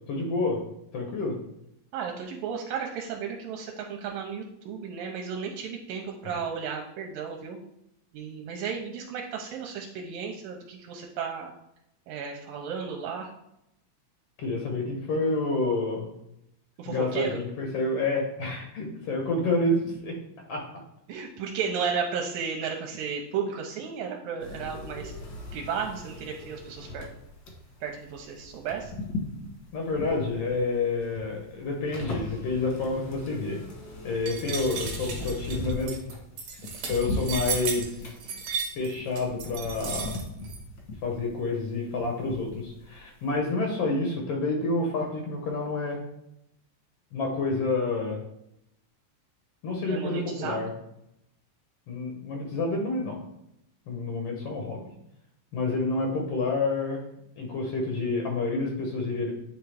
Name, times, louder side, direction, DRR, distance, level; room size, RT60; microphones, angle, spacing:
voice 1, 0.1-0.6 0.9-1.4 6.2-6.3 14.4-16.1 16.8-20.2 20.5-20.6 29.7-33.6 34.0-36.0 36.9-38.0 38.8-40.2 41.0-46.0 47.1-48.2 49.6-50.7 51.9-53.2 53.9-54.8 55.5-57.0 57.4-59.3, left 3 dB, 90° left, 1 dB, 1.3 m, -28 dB
voice 2, 1.9-7.6 8.1-11.5 12.1-13.3 16.8-17.4 21.1-25.1 25.5-27.1 27.8-28.9 49.8-50.7, right 6 dB, 80° right, 1 dB, 2.3 m, -34 dB
sound 1, 24.4-43.0 43.3-43.4, left 2 dB, 70° left, 1.1 m, -39 dB
sound 2, 34.3-40.6, right 6 dB, 65° right, 1.8 m, -34 dB
9.2 x 3.5 x 3.3 m, 0.80 s
omnidirectional pair, 4.1 m